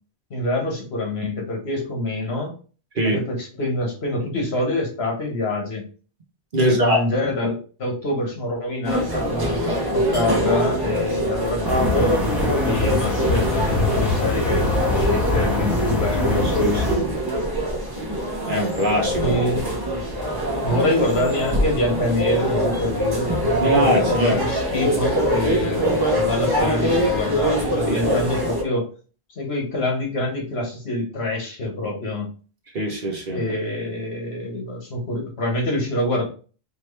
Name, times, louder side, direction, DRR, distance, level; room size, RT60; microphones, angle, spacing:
voice 1, 0.3-2.5 3.0-5.8 6.6-16.9 19.2-19.7 20.6-28.9 29.4-32.3 33.3-36.3, left 1 dB, 75° left, 1 dB, 1.5 m, -26 dB
voice 2, 6.5-7.0 16.3-17.1 18.5-19.4 23.6-24.4 27.9-28.2 32.7-33.4, equal, 55° right, 2 dB, 1.1 m, -22 dB
sound 1, 8.8-28.6, equal, 25° right, 0.9 m, -23 dB
sound 2, 11.6-17.0, left 3 dB, ahead, 1.3 m, -24 dB
4.5 x 2.9 x 3.2 m, 0.38 s
omnidirectional pair, 1.1 m